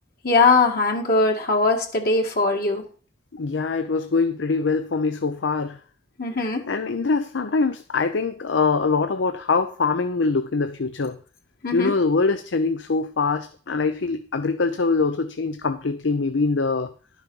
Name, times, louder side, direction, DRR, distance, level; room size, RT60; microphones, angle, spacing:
voice 1, 0.2-2.8 6.2-6.6 11.6-11.9, left 3 dB, 55° left, 2 dB, 1.7 m, -20 dB
voice 2, 3.3-5.8 6.7-11.2 11.7-16.9, left 4 dB, 80° left, 9 dB, 0.6 m, -23 dB
11.5 x 6.2 x 5.4 m, 0.41 s
head